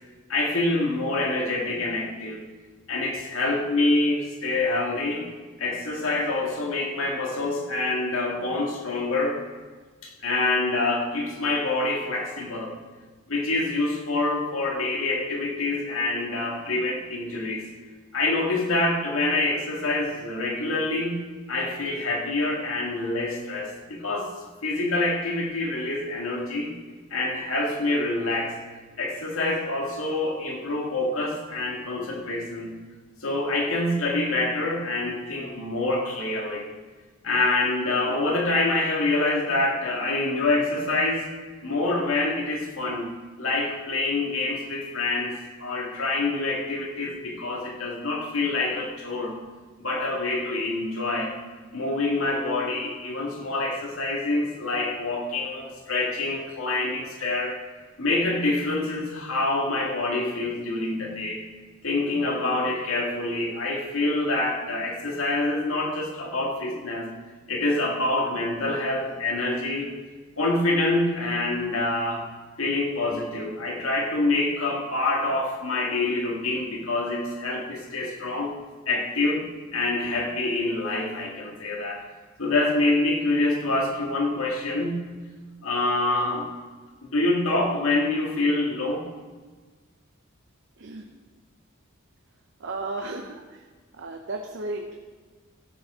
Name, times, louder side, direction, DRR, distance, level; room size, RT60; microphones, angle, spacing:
voice 1, 0.3-2.5 2.9-5.3 5.6-9.5 10.0-12.7 13.3-17.7 18.1-24.3 24.6-26.7 27.1-28.6 29.0-32.7 33.2-36.7 37.2-41.3 41.6-43.1 43.4-49.4 49.8-51.4 51.7-57.6 58.0-61.4 61.8-67.1 67.5-70.0 70.4-72.3 72.6-82.0 82.4-85.1 85.6-86.5 87.0-89.1, left 2 dB, 80° left, 0 dB, 2.0 m, -26 dB
voice 2, 90.8-91.1 92.6-93.6 94.0-95.0, right 2 dB, 60° right, 3 dB, 0.8 m, -34 dB
16.0 x 6.6 x 5.0 m, 1.4 s
head